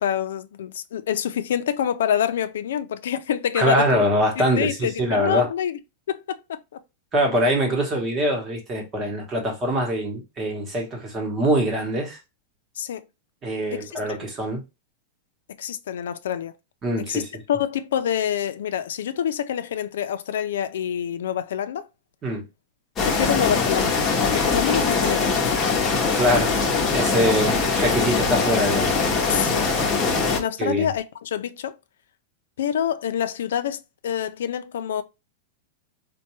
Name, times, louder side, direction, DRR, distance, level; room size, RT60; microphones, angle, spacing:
voice 1, 0.0-4.0 4.4-5.8 6.1-6.6 12.8-13.0 13.7-14.2 15.6-16.5 17.1-17.2 17.5-21.8 23.0-25.5 29.3-29.6 30.3-31.8 32.6-35.0, left 9 dB, 90° left, 0.4 m, -27 dB
voice 2, 3.5-5.5 7.1-12.2 13.4-14.6 16.8-17.2 22.2-22.4 26.1-26.6 26.9-28.9 30.6-30.9, equal, 20° right, 1.0 m, -23 dB
sound 1, 23.0-30.4, left 4 dB, 15° left, 0.8 m, -22 dB
4.4 x 2.2 x 3.0 m
supercardioid pair, 170°, 0 cm